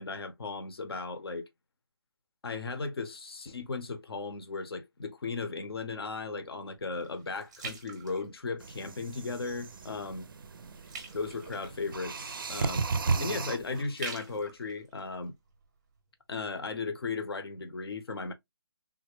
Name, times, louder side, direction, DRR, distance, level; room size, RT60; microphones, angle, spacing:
voice 1, 0.0-1.5 2.4-10.3 11.1-12.8 13.2-15.3 16.3-18.3, left 4 dB, 65° left, 0.7 m, -36 dB
sound 1, 5.7-9.0 9.4-9.8 10.1-16.0 16.5-16.6, right 4 dB, 15° right, 0.6 m, -47 dB
sound 2, 8.6-13.8, right 4 dB, 55° right, 0.4 m, -35 dB
3.4 x 2.0 x 3.2 m
hypercardioid pair, 170°, 14 cm